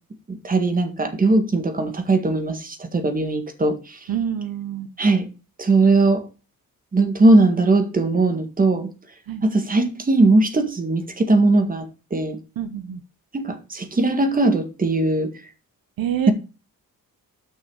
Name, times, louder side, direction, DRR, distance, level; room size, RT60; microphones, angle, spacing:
voice 1, 0.3-4.0 5.0-5.3 5.6-6.2 6.9-8.9 9.4-11.8 12.1-12.4 13.3-15.3, right 2 dB, 25° right, 1.8 m, -19 dB
voice 2, 4.1-4.9 9.3-9.4 12.6-13.0 16.0-16.3, right 9 dB, 70° right, 1.0 m, -27 dB
9.4 x 6.3 x 4.9 m
wide cardioid pair, 160°, 36 cm